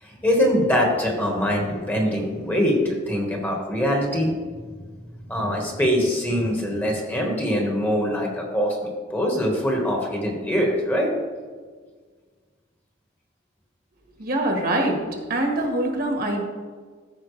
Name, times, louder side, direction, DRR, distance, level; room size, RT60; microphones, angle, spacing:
voice 1, 0.0-4.3 5.3-11.1, equal, 10° left, -1 dB, 1.4 m, -23 dB
voice 2, 14.2-15.0 15.3-16.4, right 1 dB, 50° right, 2 dB, 1.5 m, -23 dB
14.0 x 5.6 x 3.2 m, 1.5 s
head